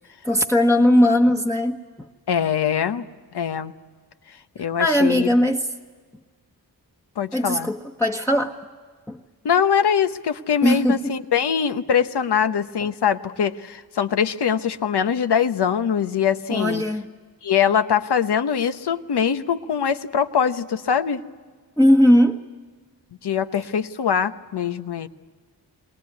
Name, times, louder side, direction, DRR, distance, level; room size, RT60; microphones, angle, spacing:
voice 1, 0.2-2.1 4.8-5.7 7.3-8.6 9.1-9.2 10.6-11.1 16.5-17.1 21.8-22.4, left 1 dB, 5° left, -1 dB, 1.2 m, -18 dB
voice 2, 2.3-3.1 3.3-3.7 4.6-5.3 7.2-7.7 9.4-16.8 17.4-21.2 23.2-25.1, left 7 dB, 75° left, 10 dB, 1.0 m, -22 dB
22.0 x 19.0 x 9.5 m, 1.5 s
cardioid pair, 45°, 41 cm